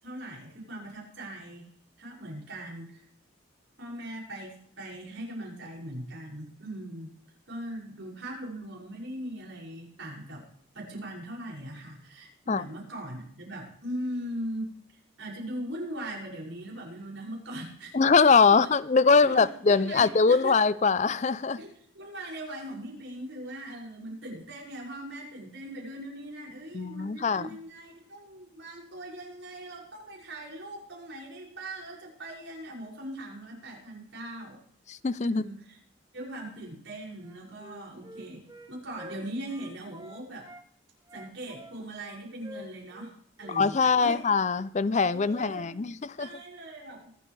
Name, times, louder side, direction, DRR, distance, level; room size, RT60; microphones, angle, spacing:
voice 1, 0.0-1.7 2.0-3.0 3.8-7.1 7.5-10.5 10.7-14.7 15.2-18.7 19.2-20.5 21.6-34.6 35.2-35.8 36.1-40.5 41.1-44.2 44.9-45.9 46.2-47.1, right 1 dB, 65° right, 6.5 m, -40 dB
voice 2, 17.9-21.6 26.7-27.5 34.9-35.5 43.5-46.3, left 4 dB, 35° left, 0.5 m, -23 dB
Wind instrument woodwind instrument, 37.2-40.6 41.1-43.1 43.4-43.6 43.9-44.2 44.4-44.7, left 1 dB, 20° right, 2.3 m, -48 dB
24.0 x 8.6 x 3.4 m
head